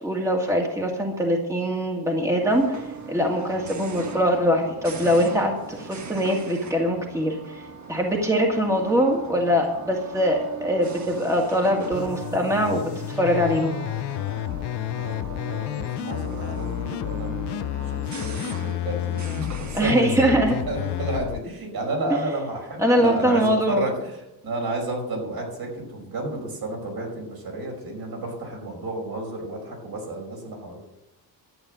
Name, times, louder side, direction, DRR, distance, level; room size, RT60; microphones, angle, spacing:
voice 1, 0.0-2.8 3.1-7.6 7.9-13.8 19.7-20.5 22.8-23.8, equal, 10° right, 0 dB, 1.9 m, -22 dB
sound 1, 2.4-21.3, right 4 dB, 45° right, 1.4 m, -39 dB
sound 2, 11.9-21.4, left 15 dB, 80° left, 0.5 m, -30 dB
voice 2, 14.8-15.2 15.4-30.8, right 2 dB, 65° right, 0 dB, 5.6 m, -31 dB
12.0 x 9.0 x 7.6 m, 0.95 s
wide cardioid pair, 150°, 40 cm